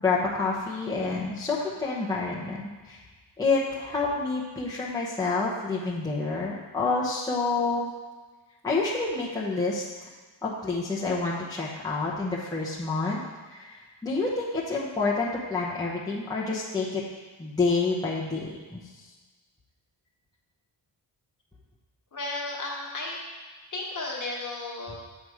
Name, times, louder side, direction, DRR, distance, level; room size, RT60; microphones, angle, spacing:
voice 1, 0.0-2.6 2.9-3.0 3.4-7.9 8.6-10.1 10.4-13.2 13.5-17.0 17.4-18.8, left 3 dB, 10° left, -6 dB, 0.9 m, -28 dB
voice 2, 22.1-23.2 23.7-25.0, left 2 dB, 40° left, -2 dB, 1.5 m, -34 dB
7.8 x 5.0 x 4.9 m, 1.3 s
wide cardioid pair, 150°, 47 cm